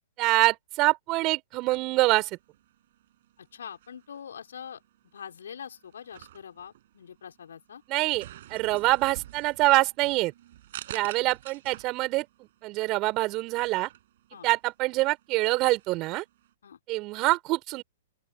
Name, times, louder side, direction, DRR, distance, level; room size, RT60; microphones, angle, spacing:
voice 1, 0.2-2.4 7.9-10.3 10.9-13.9 14.4-16.2 16.9-17.8, right 21 dB, 35° right, 4.7 m, -25 dB
sound 1, 1.6-16.5, right 13 dB, 55° right, 7.1 m, -49 dB
voice 2, 3.4-4.8 5.1-7.8 11.2-11.3 14.3-14.5 16.6-16.8, left 8 dB, 70° left, 6.0 m, -44 dB
open air
figure-of-eight pair, 115°, 0 cm